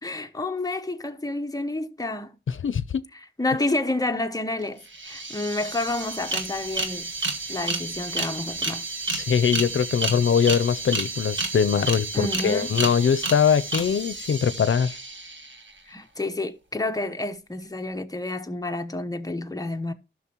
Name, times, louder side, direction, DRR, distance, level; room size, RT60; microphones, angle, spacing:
voice 1, 0.0-2.4 3.1-7.1 7.5-8.9 12.1-12.7 15.9-19.9, left 2 dB, 20° left, 0.9 m, -29 dB
voice 2, 2.5-3.0 9.1-15.0, left 7 dB, 80° left, 0.5 m, -22 dB
sound 1, 4.6-4.7 4.9-15.7, right 3 dB, 70° right, 1.7 m, -31 dB
14.0 x 6.2 x 2.9 m
wide cardioid pair, 85°, 20 cm